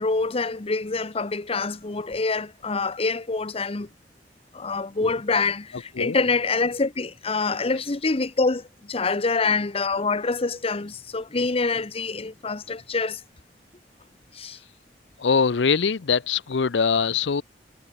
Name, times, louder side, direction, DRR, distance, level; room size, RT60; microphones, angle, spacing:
voice 1, 0.0-3.9 4.5-13.2 14.3-14.6, left 3 dB, 35° left, 0.9 m, -26 dB
voice 2, 15.2-17.4, left 5 dB, 85° left, 0.6 m, -22 dB
head